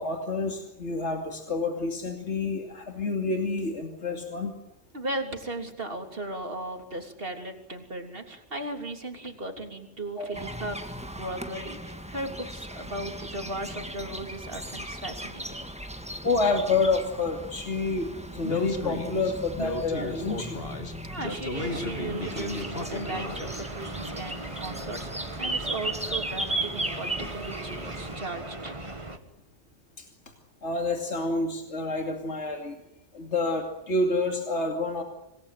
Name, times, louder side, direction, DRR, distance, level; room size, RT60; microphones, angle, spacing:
voice 1, 0.0-4.5 10.2-10.3 16.2-18.1 18.3-20.6 30.0-30.1 30.6-32.8 33.1-35.0, left 3 dB, 75° left, 3 dB, 2.9 m, -28 dB
voice 2, 4.9-10.8 11.1-15.4 21.1-28.8, right 2 dB, 50° right, 4 dB, 3.6 m, -37 dB
sound 1, 10.3-28.2, right 1 dB, 5° right, 1.7 m, -37 dB
Speech, 18.4-23.6, left 3 dB, 55° left, 2.7 m, -35 dB
sound 2, 21.5-29.2, right 2 dB, 25° right, 1.9 m, -39 dB
26.5 x 19.5 x 9.2 m, 0.86 s
omnidirectional pair, 1.2 m